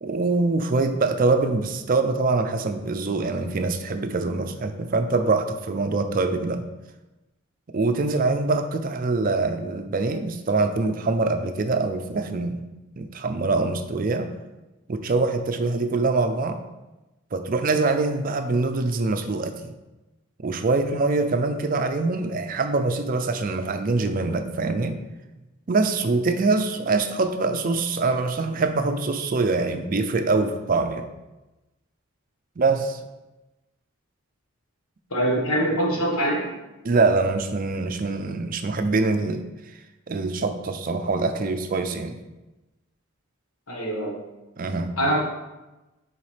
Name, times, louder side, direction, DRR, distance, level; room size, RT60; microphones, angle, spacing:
voice 1, 0.0-6.6 7.7-12.6 13.0-14.3 14.9-16.6 17.3-19.7 20.4-25.0 25.7-31.1 32.6-33.0 36.8-39.4 40.1-42.2 44.6-44.9, right 3 dB, 40° right, 7 dB, 0.4 m, -24 dB
voice 2, 35.1-36.5 43.7-44.2 45.0-45.2, right 1 dB, 85° left, -1 dB, 1.4 m, -23 dB
7.1 x 4.7 x 3.3 m, 1.0 s
head